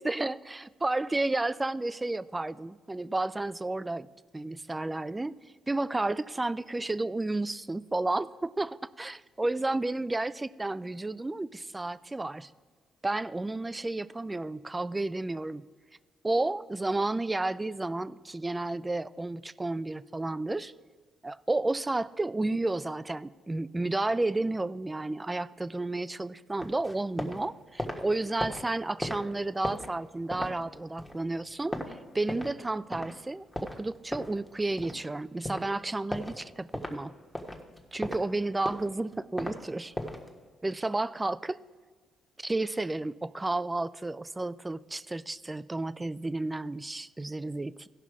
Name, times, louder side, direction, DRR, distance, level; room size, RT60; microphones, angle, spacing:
voice 1, 0.0-4.1 4.3-12.5 13.0-15.7 16.2-20.7 21.2-37.1 37.9-39.9 40.6-41.6 42.4-47.9, right 2 dB, 15° right, 18 dB, 0.3 m, -32 dB
sound 1, 26.6-27.4 27.7-32.6 32.9-33.1 33.5-35.1 35.4-35.7 36.1-36.4 36.7-37.0 37.3-38.3 38.6-39.6 39.9-40.3, left 1 dB, 5° left, 1.4 m, -36 dB
16.0 x 5.6 x 4.7 m, 1.5 s
cardioid pair, 90°, 0 cm